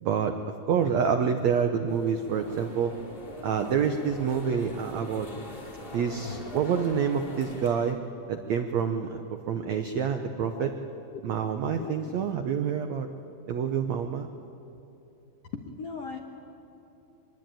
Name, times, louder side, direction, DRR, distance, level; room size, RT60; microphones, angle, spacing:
voice 1, 0.0-0.3 0.7-2.9 3.4-5.3 5.9-8.0 8.3-9.2 9.5-10.7 11.2-13.1 13.5-14.3, right 7 dB, 80° right, 6 dB, 1.6 m, -27 dB
sound 1, 1.9-7.9, left 2 dB, 15° left, 2.3 m, -42 dB
voice 2, 10.5-11.2 11.8-12.0 15.5-16.2, left 5 dB, 60° left, 2 dB, 1.7 m, -39 dB
24.5 x 22.0 x 9.0 m, 2.9 s
omnidirectional pair, 4.5 m